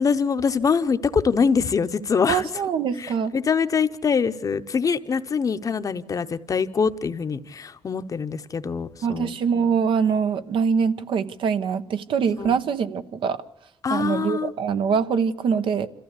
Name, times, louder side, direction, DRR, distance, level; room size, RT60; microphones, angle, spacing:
voice 1, 0.0-2.5 3.0-9.4 12.4-12.6 13.8-14.5, left 5 dB, 40° left, 0.8 m, -24 dB
voice 2, 2.3-3.3 9.0-13.4 13.9-15.9, right 6 dB, 70° right, 1.0 m, -23 dB
26.5 x 15.0 x 8.2 m
cardioid pair, 115°, 9 cm